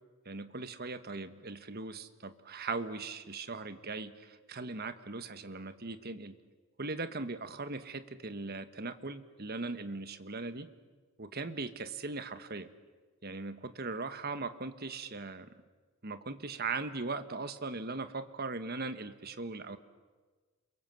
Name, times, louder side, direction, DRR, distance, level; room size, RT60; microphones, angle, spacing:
voice 1, 0.2-6.3 6.8-10.7 11.2-12.7 13.2-15.5 16.0-19.8, right 3 dB, 45° right, 10 dB, 1.3 m, -39 dB
30.0 x 22.5 x 7.7 m, 1.4 s
head